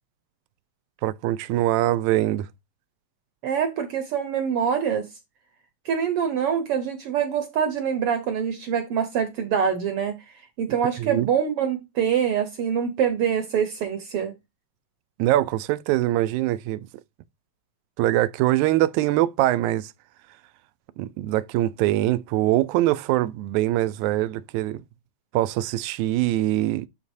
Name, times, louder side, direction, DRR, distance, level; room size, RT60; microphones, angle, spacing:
voice 1, 1.0-2.5 11.0-11.3 15.2-16.9 18.0-19.9 21.0-24.8 25.3-26.9, right 15 dB, 85° right, 1.9 m, -23 dB
voice 2, 3.4-5.1 5.8-10.2 10.6-14.3, right 7 dB, 65° right, 1.6 m, -25 dB
11.5 x 3.9 x 2.7 m
omnidirectional pair, 3.4 m